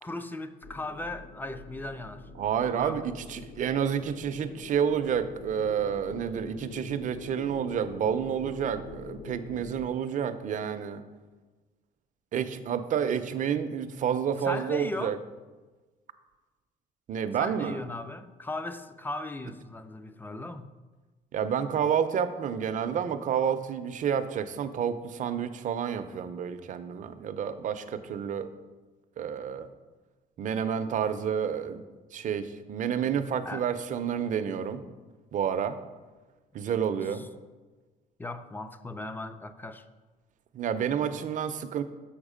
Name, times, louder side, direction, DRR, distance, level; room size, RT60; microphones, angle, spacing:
voice 1, 0.0-2.3 2.8-3.0 14.4-15.2 17.4-20.7 33.4-33.7 37.1-37.3 38.2-39.9, left 2 dB, 10° left, 11 dB, 0.4 m, -37 dB
sound 1, 0.6-9.9, left 4 dB, 60° left, 0.7 m, -45 dB
voice 2, 2.4-11.0 12.3-15.2 17.1-17.8 21.3-28.5 29.2-29.7 30.4-31.8 32.1-34.8 35.3-35.8 36.5-37.2 40.5-41.8, right 8 dB, 50° right, 10 dB, 0.5 m, -29 dB
7.2 x 4.8 x 5.0 m, 1.3 s
cardioid pair, 110°, 17 cm